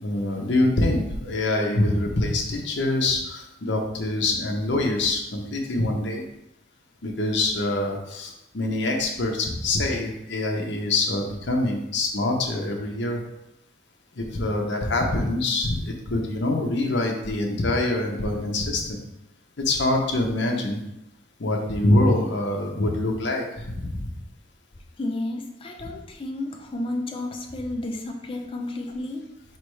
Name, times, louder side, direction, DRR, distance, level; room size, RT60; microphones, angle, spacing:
voice 1, 0.0-6.2 7.0-13.2 14.2-19.0 19.6-20.8 21.4-24.1, left 2 dB, 60° left, 1 dB, 0.7 m, -25 dB
voice 2, 25.0-29.3, left 2 dB, 25° left, 2 dB, 0.4 m, -32 dB
4.5 x 3.3 x 3.1 m, 0.86 s
head